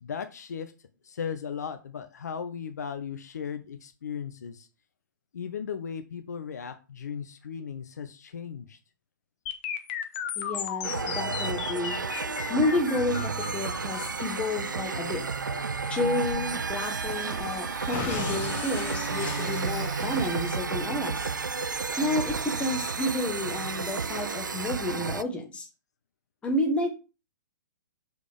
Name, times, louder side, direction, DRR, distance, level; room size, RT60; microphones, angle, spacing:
voice 1, 0.0-0.7 1.0-4.7 5.3-8.8, left 7 dB, 60° left, 8 dB, 0.7 m, -36 dB
sound 1, 9.5-17.4 17.9-20.5, left 9 dB, 40° left, 1.0 m, -37 dB
voice 2, 10.4-12.0 12.5-15.2 15.9-21.3 22.0-25.7 26.4-26.9, left 1 dB, 10° left, 2 dB, 1.3 m, -30 dB
sound 2, 10.8-25.2, right 4 dB, 75° right, 0.4 m, -32 dB
Domestic sounds home sounds, 16.0-22.3, right 3 dB, 25° right, 1.5 m, -42 dB
6.4 x 5.1 x 3.5 m, 0.31 s
figure-of-eight pair, 115°, 10 cm